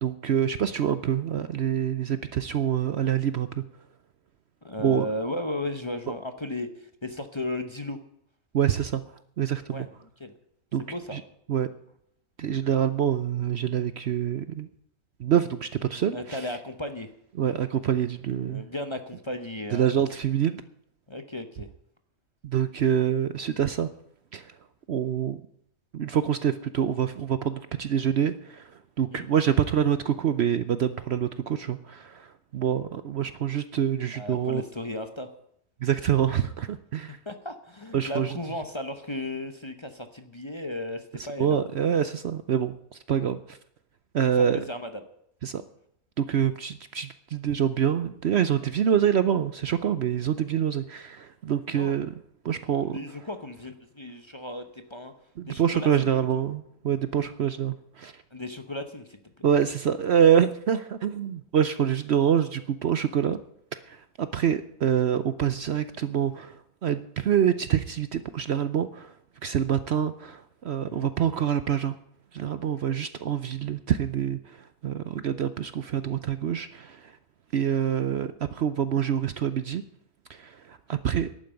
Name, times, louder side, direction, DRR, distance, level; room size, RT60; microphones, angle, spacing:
voice 1, 0.0-3.6 4.8-5.1 8.5-9.0 9.4-9.9 10.7-10.8 11.1-11.2 11.5-11.7 12.4-14.7 15.2-16.4 17.4-18.6 19.7-20.6 22.4-23.9 24.3-24.5 24.9-25.4 25.9-28.7 29.0-34.6 35.8-37.2 37.9-38.4 41.4-43.6 44.1-44.6 45.4-45.6 46.2-52.1 52.4-53.0 55.4-58.2 59.4-63.4 63.9-69.1 69.4-72.0 72.3-74.6 74.8-77.1 77.5-79.8 80.3-81.3, right 9 dB, 60° right, 12 dB, 0.8 m, -26 dB
voice 2, 4.6-8.0 9.7-9.9 10.2-10.4 10.8-11.2 16.1-17.1 18.5-19.9 21.1-21.7 29.1-29.2 34.1-35.3 37.3-41.6 44.3-45.0 51.8-52.0 52.8-55.1 55.5-56.4 58.3-59.5 70.8-71.1, left 1 dB, 25° left, 7 dB, 0.9 m, -35 dB
11.5 x 8.9 x 9.0 m, 0.73 s
omnidirectional pair, 1.5 m